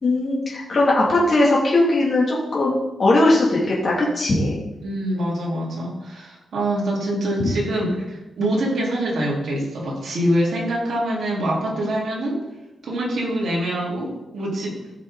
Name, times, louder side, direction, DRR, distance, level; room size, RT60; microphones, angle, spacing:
voice 1, 0.0-4.6, left 2 dB, 35° left, -5 dB, 2.4 m, -19 dB
voice 2, 4.8-12.4 12.8-14.8, right 1 dB, 65° right, -5 dB, 3.8 m, -24 dB
15.0 x 6.1 x 3.9 m, 0.99 s
wide cardioid pair, 145°, 0 cm